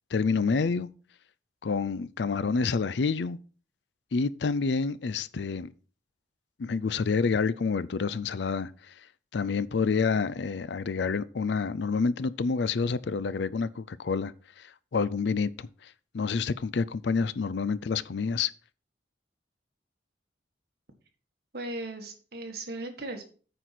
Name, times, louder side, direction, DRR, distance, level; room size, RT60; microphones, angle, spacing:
voice 1, 0.1-0.9 1.6-3.4 4.1-5.7 6.6-8.9 9.3-18.5, left 5 dB, 70° left, 0.5 m, -28 dB
voice 2, 21.5-23.2, right 2 dB, 55° right, 1.7 m, -37 dB
9.1 x 4.3 x 6.0 m
head